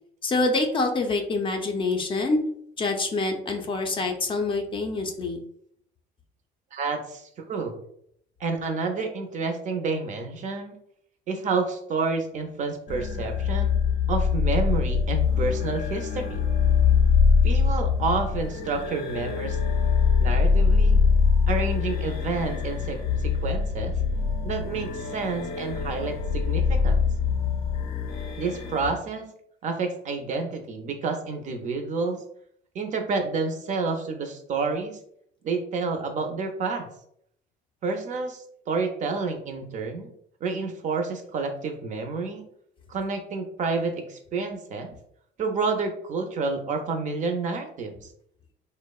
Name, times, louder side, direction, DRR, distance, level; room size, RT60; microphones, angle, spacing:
voice 1, 0.2-2.4 2.8-5.4, left 3 dB, 30° left, 3 dB, 0.4 m, -26 dB
voice 2, 6.7-7.8 8.4-10.7 11.3-13.8 14.1-16.4 17.4-19.6 20.2-21.0 21.5-24.0 24.4-27.0 28.4-29.3 29.6-32.2 32.7-35.0 35.4-36.9 37.8-40.1 40.4-42.4 42.9-44.9 45.4-48.0, right 4 dB, 45° right, 5 dB, 0.4 m, -29 dB
sound 1, 12.9-28.9, left 5 dB, 80° left, 0.5 m, -23 dB
2.8 x 2.0 x 2.3 m, 0.69 s
cardioid pair, 110°, 17 cm